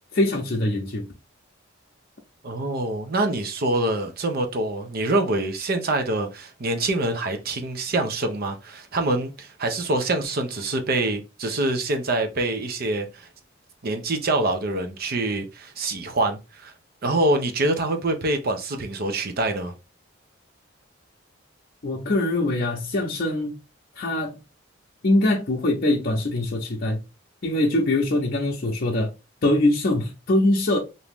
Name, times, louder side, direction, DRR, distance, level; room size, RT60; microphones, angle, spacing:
voice 1, 0.1-1.1 21.8-23.6 24.0-24.3 25.0-27.0 27.4-29.1 29.4-30.8, left 1 dB, 50° left, 0.6 m, -23 dB
voice 2, 2.4-13.3 13.8-16.7 17.0-19.7, right 2 dB, 50° right, 0.6 m, -25 dB
2.9 x 2.6 x 3.4 m
head